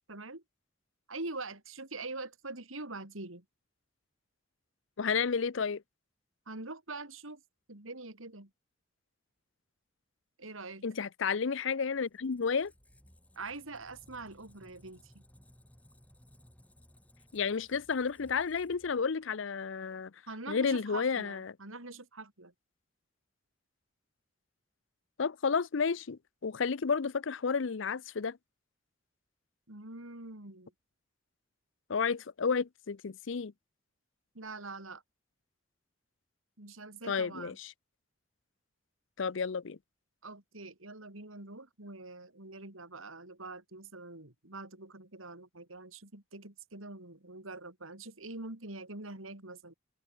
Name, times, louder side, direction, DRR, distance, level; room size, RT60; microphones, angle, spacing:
voice 1, 0.1-0.4 1.1-3.4 6.5-7.4 7.7-8.5 10.4-10.9 13.4-15.2 20.3-22.5 29.7-30.7 34.3-35.0 36.6-37.6 40.2-49.7, right 3 dB, 90° right, 4.2 m, -44 dB
voice 2, 5.0-5.8 10.8-12.7 17.3-20.1 20.5-21.5 25.2-28.4 31.9-33.5 37.1-37.7 39.2-39.8, left 5 dB, 70° left, 0.6 m, -31 dB
Squeak, 11.7-19.4, equal, 5° left, 5.2 m, -61 dB
head